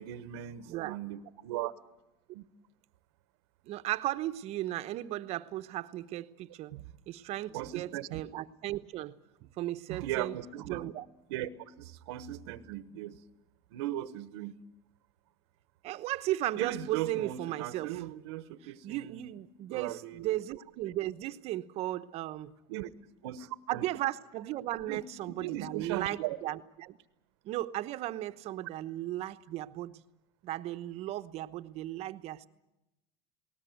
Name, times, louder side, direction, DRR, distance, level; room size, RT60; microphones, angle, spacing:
voice 1, 0.0-1.7 2.3-2.4 6.7-6.8 7.5-8.2 9.9-10.9 11.3-11.5 11.8-13.2 13.7-14.5 16.6-19.4 19.7-20.4 22.7-22.9 23.2-23.8 24.9-25.0 25.3-26.4, right 13 dB, 85° right, 14 dB, 1.1 m, -38 dB
voice 2, 3.6-6.7 7.1-9.1 9.4-10.4 10.7-11.0 15.8-18.0 18.8-22.5 23.7-27.0 27.4-30.0 30.4-32.5, right 15 dB, 50° right, 11 dB, 1.0 m, -36 dB
20.0 x 19.0 x 9.4 m, 0.92 s
supercardioid pair, 130°, 14 cm